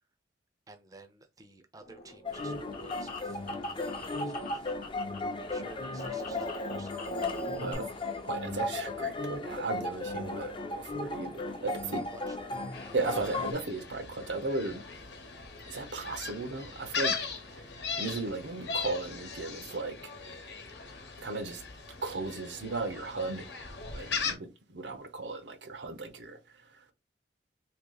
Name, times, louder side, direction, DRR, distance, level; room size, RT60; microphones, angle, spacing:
voice 1, 0.7-4.7 5.4-7.0 11.6-11.7 12.1-12.5, right 2 dB, 20° right, 0.5 m, -53 dB
sound 1, 1.8-5.2 5.4-7.7, left 1 dB, 50° left, 0.8 m, -41 dB
sound 2, 2.3-13.5, left 2 dB, 30° left, 0.5 m, -36 dB
voice 2, 7.6-7.9 8.2-12.1 12.9-14.8 15.6-17.2 17.5-17.6 18.0-20.0 21.2-21.6 22.0-23.5 23.9-26.9, right 3 dB, 90° right, 0.7 m, -36 dB
Gull seagull, 12.7-24.3, left 5 dB, 75° left, 0.9 m, -39 dB
2.8 x 2.8 x 3.8 m
head